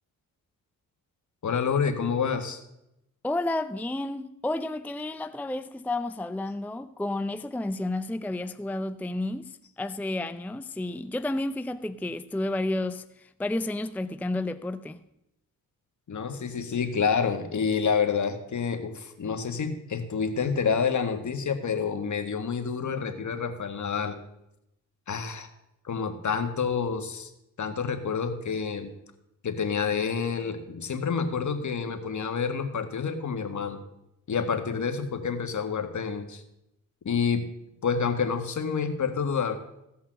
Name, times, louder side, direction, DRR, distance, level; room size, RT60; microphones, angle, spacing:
voice 1, 1.4-2.6 16.1-24.2 25.1-25.5 25.8-27.3 27.6-28.9 29.4-33.8 34.3-36.4 37.0-37.4 37.8-39.6, left 6 dB, 55° left, 1.7 m, -28 dB
voice 2, 3.2-15.0, left 2 dB, 5° left, 0.5 m, -31 dB
15.5 x 5.6 x 7.5 m
cardioid pair, 60°, 36 cm